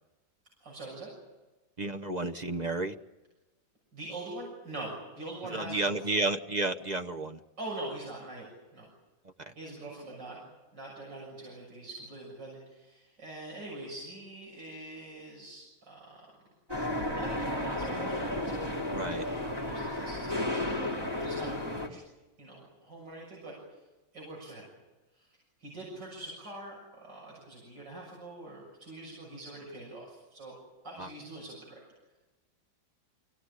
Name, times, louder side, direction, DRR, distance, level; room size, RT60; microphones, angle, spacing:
voice 1, 0.6-1.1 3.9-6.2 7.6-8.9 9.6-10.5 10.7-16.2 17.1-18.4 19.1-20.9 21.2-22.0 22.4-23.8 24.1-24.7 25.1-25.3 25.6-30.5 30.8-31.8, right 2 dB, 65° right, -3 dB, 7.5 m, -44 dB
voice 2, 1.8-2.9 5.4-7.4 9.4-9.5 18.9-19.3 31.0-31.1, right 2 dB, 40° right, 7 dB, 0.6 m, -32 dB
sound 1, 16.7-21.9, left 1 dB, 10° right, 2.8 m, -33 dB
24.5 x 18.5 x 9.9 m, 1.1 s
omnidirectional pair, 2.1 m